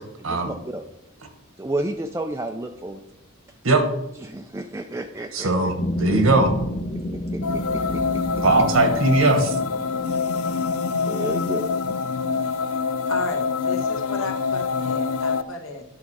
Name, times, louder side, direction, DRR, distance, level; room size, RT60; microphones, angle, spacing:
voice 1, 1.6-3.0 4.2-5.7 7.1-8.0 11.1-11.7, right 1 dB, 15° right, 5 dB, 0.4 m, -31 dB
voice 2, 5.3-6.5 8.4-9.6, right 2 dB, 75° right, 7 dB, 1.4 m, -19 dB
sound 1, 5.8-12.5, left 1 dB, 20° left, 0.7 m, -31 dB
sound 2, 7.4-15.4, left 5 dB, 90° left, 0.5 m, -25 dB
voice 3, 13.1-15.8, left 2 dB, 65° left, 3 dB, 1.4 m, -34 dB
10.5 x 6.1 x 4.7 m, 0.87 s
head